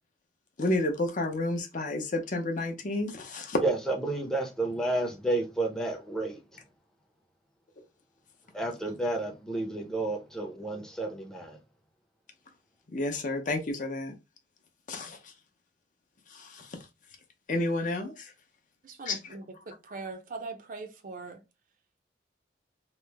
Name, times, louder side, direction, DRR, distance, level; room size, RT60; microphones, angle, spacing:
voice 1, 0.6-3.6 12.9-14.1 14.9-15.2 16.3-16.8 17.5-18.3 19.1-19.3, left 2 dB, 45° left, 0.6 m, -30 dB
voice 2, 3.6-6.4 8.5-11.6, right 2 dB, 5° left, 0.6 m, -31 dB
voice 3, 18.8-21.4, right 3 dB, 50° right, 0.5 m, -41 dB
3.0 x 2.0 x 3.3 m
head